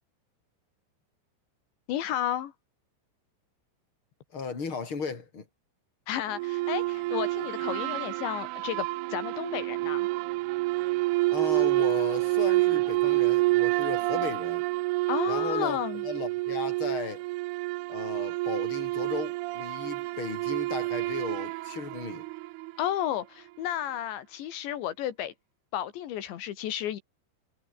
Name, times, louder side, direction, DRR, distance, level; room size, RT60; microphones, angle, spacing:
voice 1, 1.9-2.5 6.1-10.1 15.1-16.1 22.8-25.3 25.7-27.0, left 11 dB, 80° left, 4.2 m, -32 dB
voice 2, 4.3-5.4 11.3-14.6 15.3-15.8 16.1-17.2 17.9-22.2, left 5 dB, 30° left, 5.2 m, -36 dB
sound 1, 6.3-22.9, right 21 dB, 85° right, 2.3 m, -28 dB
omnidirectional pair, 5.1 m